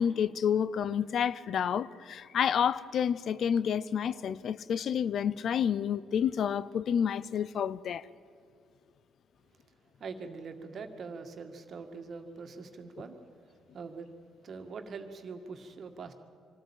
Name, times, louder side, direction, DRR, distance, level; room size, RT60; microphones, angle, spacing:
voice 1, 0.0-8.1, left 8 dB, 60° left, 0.5 m, -29 dB
voice 2, 10.0-13.2 13.7-14.1 14.4-16.1, right 4 dB, 55° right, 2.0 m, -43 dB
23.5 x 13.5 x 8.9 m
hypercardioid pair, 55°, 0 cm